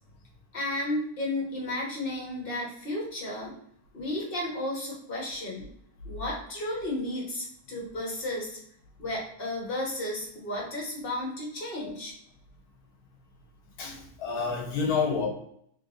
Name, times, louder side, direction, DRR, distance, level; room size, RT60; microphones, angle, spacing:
voice 1, 0.5-3.5 3.9-5.7 6.0-8.6 9.0-12.1, left 1 dB, 40° left, -3 dB, 1.4 m, -33 dB
voice 2, 13.8-15.3, left 5 dB, 85° left, 2 dB, 1.4 m, -29 dB
3.8 x 3.7 x 2.6 m, 0.66 s
omnidirectional pair, 1.6 m